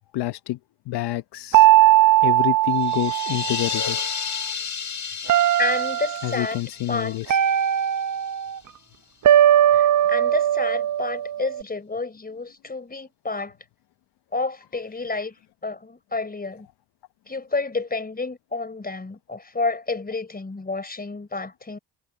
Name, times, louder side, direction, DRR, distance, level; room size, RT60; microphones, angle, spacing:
voice 1, 0.1-0.6 0.9-1.7 2.2-4.0 6.2-7.4, left 16 dB, 75° left, 1.0 m, -28 dB
sound 1, 1.5-3.9 5.3-6.3 7.3-8.6 9.2-11.6, right 12 dB, 50° right, 0.8 m, -19 dB
sound 2, 2.7-8.3, left 7 dB, 40° left, 2.0 m, -32 dB
voice 2, 5.6-6.6 6.9-7.2 9.7-13.5 14.3-15.3 15.6-16.7 17.3-21.8, left 3 dB, 20° left, 4.3 m, -30 dB
supercardioid pair, 65°, 40 cm